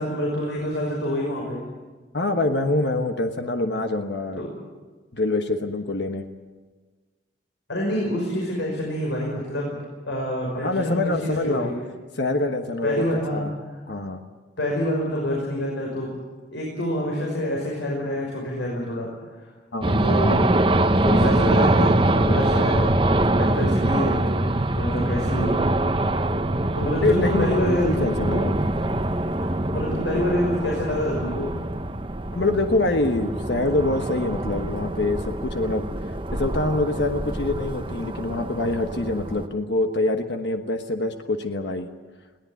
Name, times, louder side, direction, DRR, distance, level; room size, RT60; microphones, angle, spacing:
voice 1, 0.0-1.6 4.3-4.5 7.7-9.8 10.1-11.8 12.8-13.4 14.6-16.1 16.5-19.1 19.4-19.5 20.0-20.5 21.0-23.0 23.4-25.7 26.7-28.0 29.4-31.5, equal, 85° left, -2 dB, 5.9 m, -27 dB
voice 2, 2.1-4.4 5.1-6.2 10.5-11.7 12.2-13.1 13.3-13.5 13.9-14.2 19.7-20.0 27.0-28.6 32.3-35.9 36.3-41.9, left 2 dB, 70° left, 6 dB, 1.3 m, -25 dB
sound 1, 19.8-39.5, right 1 dB, 25° right, 0.9 m, -24 dB
21.0 x 18.0 x 9.3 m, 1.4 s
head